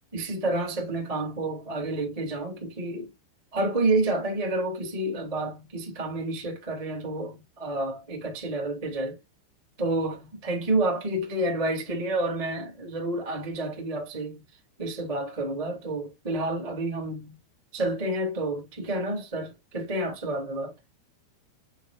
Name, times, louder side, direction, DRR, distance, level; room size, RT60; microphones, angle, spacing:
voice 1, 0.1-3.1 3.5-9.2 9.8-14.4 14.8-17.4 17.7-20.7, right 2 dB, 20° right, 0.8 m, -29 dB
9.1 x 4.3 x 2.6 m
omnidirectional pair, 5.9 m